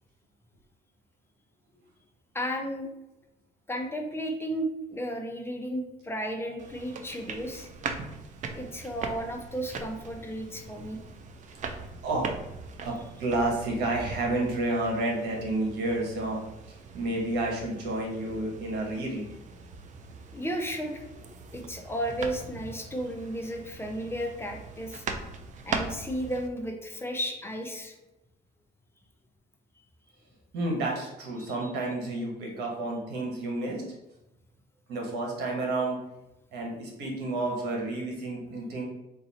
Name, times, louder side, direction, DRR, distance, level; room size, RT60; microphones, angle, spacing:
voice 1, 2.3-2.9 3.7-7.7 8.5-11.0 20.3-21.0 21.5-25.1 25.6-28.0 31.6-31.7, equal, 15° left, 2 dB, 0.6 m, -33 dB
sound 1, 6.6-26.5, right 4 dB, 45° right, 0.5 m, -41 dB
voice 2, 12.0-12.3 12.8-16.4 16.9-19.3 30.5-33.8 34.9-36.0 36.5-38.8, right 2 dB, 80° right, -1 dB, 1.3 m, -30 dB
4.0 x 2.6 x 4.1 m, 0.94 s
cardioid pair, 110°, 17 cm